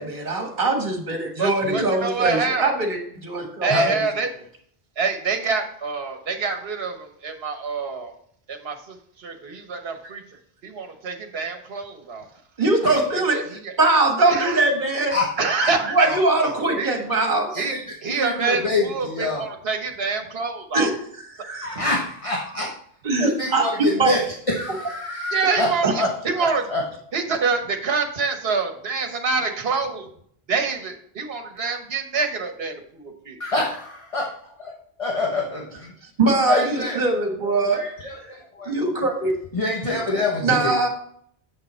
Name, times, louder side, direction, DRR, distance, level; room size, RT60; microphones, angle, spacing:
voice 1, 0.0-4.0 10.0-10.1 12.6-15.1 15.9-17.5 20.7-21.0 21.3-21.7 23.0-24.1 25.8-25.9 36.2-37.8 38.6-39.4 40.4-40.9, right 2 dB, 50° right, 2 dB, 1.7 m, -22 dB
voice 2, 1.4-2.7 3.6-4.3 5.0-8.1 8.5-10.2 10.6-12.3 13.1-13.7 14.3-14.7 15.4-16.1 16.8-16.9 17.6-17.7 18.0-20.9 25.3-26.6 27.1-30.1 30.5-33.4, right 4 dB, 70° right, 5 dB, 1.3 m, -26 dB
voice 3, 16.0-16.5 17.5-19.5 21.5-22.7 23.2-24.2 24.5-25.7 26.0-26.1 26.4-26.8 33.4-34.3 35.0-35.9 36.5-37.0 37.7-38.7 39.5-40.7, left 2 dB, 30° left, -2 dB, 1.2 m, -26 dB
7.5 x 6.8 x 4.3 m, 0.64 s
omnidirectional pair, 1.1 m